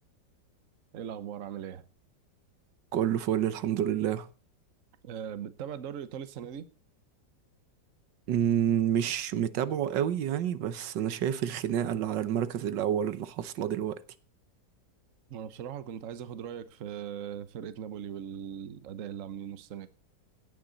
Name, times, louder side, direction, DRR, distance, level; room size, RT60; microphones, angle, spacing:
voice 1, 0.9-1.8 5.0-6.7 15.3-19.9, right 9 dB, 55° right, 1.2 m, -39 dB
voice 2, 2.9-4.3 8.3-14.0, right 10 dB, 85° right, 1.6 m, -28 dB
16.5 x 10.0 x 4.0 m
omnidirectional pair, 1.9 m